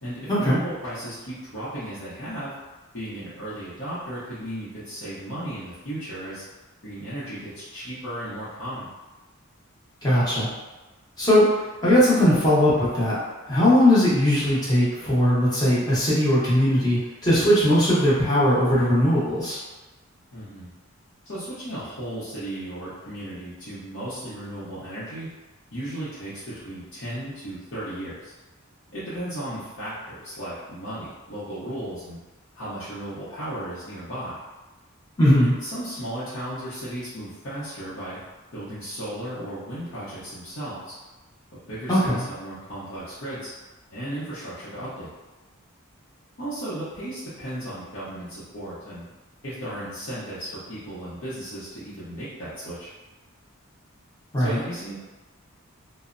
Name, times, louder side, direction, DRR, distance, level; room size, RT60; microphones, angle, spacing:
voice 1, 0.0-2.5 2.9-6.4 6.8-8.9 20.3-20.7 21.2-25.3 25.7-28.3 28.9-32.2 32.5-34.4 35.4-38.2 38.5-40.9 41.5-43.5 43.9-45.1 46.4-49.0 49.4-52.9 54.4-54.9, right 1 dB, 60° left, -11 dB, 0.7 m, -35 dB
voice 2, 10.0-10.5 11.2-11.5 11.8-13.2 13.5-19.6 35.2-35.5 41.9-42.2 54.3-54.6, left 1 dB, 20° left, -9 dB, 0.9 m, -19 dB
3.1 x 2.0 x 2.5 m, 1.1 s
head